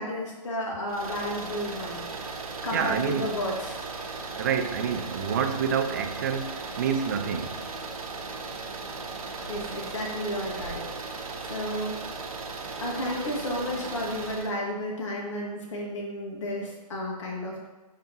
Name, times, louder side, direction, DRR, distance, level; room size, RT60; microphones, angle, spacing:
voice 1, 0.0-2.0 2.6-3.8 9.5-12.0 12.8-17.7, left 1 dB, 45° left, 2.0 m, -32 dB
sound 1, 0.9-14.5, right 4 dB, 60° right, 1.0 m, -37 dB
voice 2, 2.7-3.3 4.4-7.6, right 7 dB, 25° right, 0.4 m, -28 dB
10.0 x 3.5 x 3.0 m
figure-of-eight pair, 135°, 21 cm